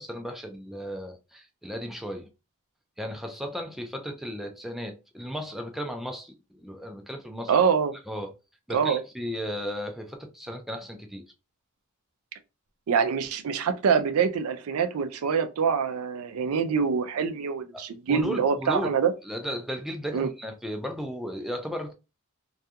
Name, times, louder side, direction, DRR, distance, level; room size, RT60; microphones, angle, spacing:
voice 1, 0.0-2.3 3.0-7.5 8.1-8.3 8.7-11.2 17.7-19.0 19.2-21.9, equal, ahead, 0.4 m, -35 dB
voice 2, 7.5-7.9 8.7-9.0 12.9-19.1 20.1-20.3, right 6 dB, 75° right, 0.4 m, -25 dB
2.3 x 2.2 x 2.7 m
head